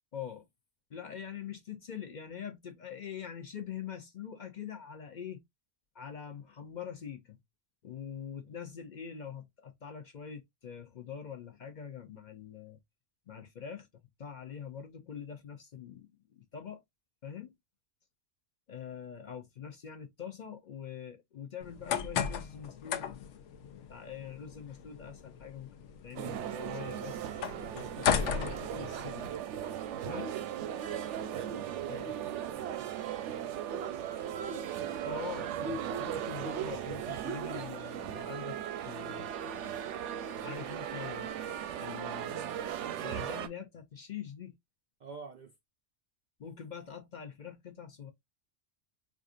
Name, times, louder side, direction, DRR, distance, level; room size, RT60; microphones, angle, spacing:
voice 1, 0.1-0.5 0.9-5.4 5.9-7.4 7.8-12.8 13.3-16.1 16.4-16.8 17.2-17.5 18.7-25.7 26.0-29.3 30.0-30.4 31.9-32.1 35.0-39.3 40.4-41.3 41.8-44.6 46.4-48.1, left 8 dB, 50° left, 0.6 m, -44 dB
sound 1, 21.6-29.4, left 8 dB, 85° left, 0.9 m, -36 dB
sound 2, 26.2-43.5, right 9 dB, 90° right, 0.9 m, -37 dB
voice 2, 31.1-34.4 34.6-35.8 45.0-45.5, right 5 dB, 60° right, 0.5 m, -50 dB
4.3 x 2.4 x 2.5 m
omnidirectional pair, 1.2 m